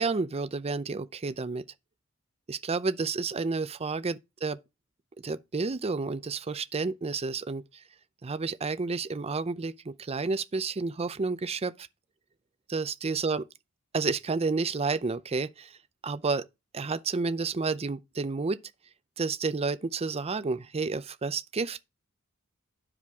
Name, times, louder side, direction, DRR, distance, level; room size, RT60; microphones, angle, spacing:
voice 1, 0.0-1.6 2.5-4.6 5.2-7.6 8.2-11.7 12.7-13.5 13.9-15.7 16.0-16.5 16.7-18.6 19.2-21.8, right 4 dB, 30° right, 0.5 m, -30 dB
11.0 x 5.0 x 3.5 m
head